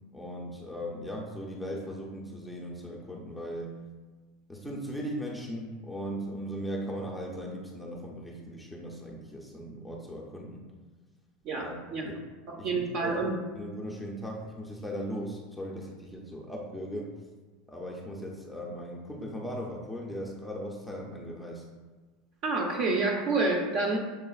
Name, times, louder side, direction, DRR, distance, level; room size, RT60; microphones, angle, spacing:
voice 1, 0.1-3.7 4.5-10.7 11.6-12.2 12.6-13.2 13.6-17.1 17.7-21.6, equal, ahead, -3 dB, 0.5 m, -38 dB
voice 2, 11.4-12.1 12.5-13.4 22.4-24.0, right 3 dB, 45° right, 2 dB, 0.6 m, -28 dB
6.7 x 2.4 x 2.4 m, 1.3 s
supercardioid pair, 140°, 0 cm